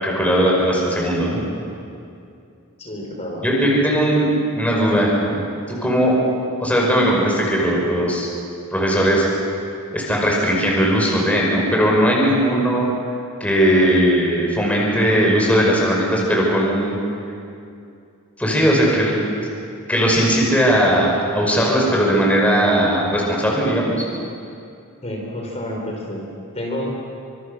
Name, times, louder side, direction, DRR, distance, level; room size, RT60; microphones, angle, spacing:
voice 1, 0.0-1.4 3.4-4.3 4.5-5.4 5.7-6.2 6.6-8.3 8.7-9.3 9.9-12.9 13.4-16.9 18.4-19.2 19.9-24.0, equal, 5° left, -2 dB, 5.6 m, -18 dB
voice 2, 2.8-3.5 25.0-26.2 26.5-26.9, left 1 dB, 30° left, -1 dB, 4.5 m, -29 dB
29.0 x 26.0 x 6.7 m, 2.5 s
head